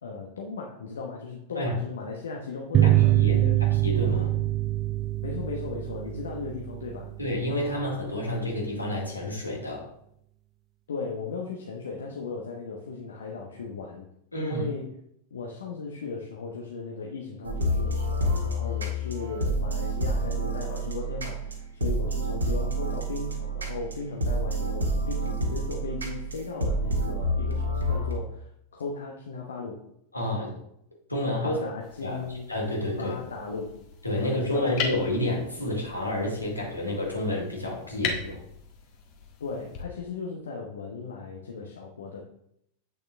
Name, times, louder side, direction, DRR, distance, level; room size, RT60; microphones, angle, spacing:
voice 1, 0.0-3.6 5.2-7.1 10.9-14.1 14.4-14.9 15.3-29.8 31.4-32.5 33.0-33.8 34.2-34.9 39.4-42.2, left 4 dB, 65° left, 0 dB, 1.0 m, -36 dB
sound 1, 2.7-7.9, right 15 dB, 30° right, 0.3 m, -24 dB
voice 2, 3.2-4.4 7.2-9.9 14.3-14.6 30.1-30.5 31.1-31.5 32.0-32.2 32.5-33.2 34.0-38.4, left 1 dB, 85° left, -2 dB, 2.6 m, -29 dB
sound 2, 17.4-28.2, right 1 dB, 80° right, 1.6 m, -28 dB
sound 3, 31.8-39.8, left 5 dB, 40° left, 1.6 m, -39 dB
8.6 x 6.4 x 3.3 m, 0.75 s
figure-of-eight pair, 90°, 0 cm